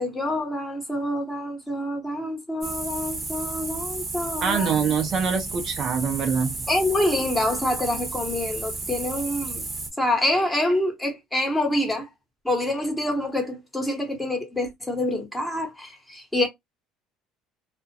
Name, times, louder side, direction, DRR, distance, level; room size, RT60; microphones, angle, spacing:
voice 1, 0.0-4.8 6.7-9.6 10.0-12.1 12.4-16.5, left 1 dB, 10° left, 1.1 m, -26 dB
sound 1, 2.6-9.9, right 3 dB, 25° right, 0.9 m, -33 dB
voice 2, 4.4-6.6, right 6 dB, 50° right, 0.5 m, -24 dB
2.3 x 2.1 x 2.6 m
supercardioid pair, 95°, 0 cm